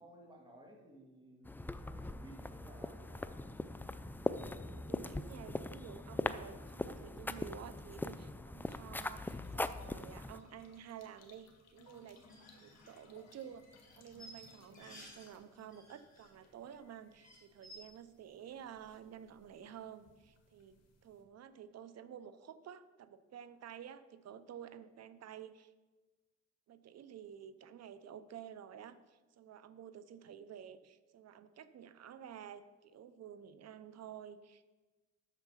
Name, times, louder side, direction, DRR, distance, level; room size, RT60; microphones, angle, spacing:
voice 1, 0.0-1.5 1.8-3.3, right 1 dB, 15° right, 0 dB, 2.2 m, -57 dB
sound 1, 1.4-10.4, left 2 dB, 5° left, 0.3 m, -41 dB
voice 2, 4.7-12.2 12.6-25.7 26.7-34.6, right 9 dB, 60° right, 13 dB, 0.6 m, -51 dB
sound 2, 8.6-21.2, left 3 dB, 60° left, 1.7 m, -65 dB
sound 3, 12.2-15.3 15.6-16.5 16.8-16.9 17.1-17.8, equal, 25° left, 3.6 m, -56 dB
8.2 x 6.8 x 5.7 m, 1.2 s
cardioid pair, 90°, 30 cm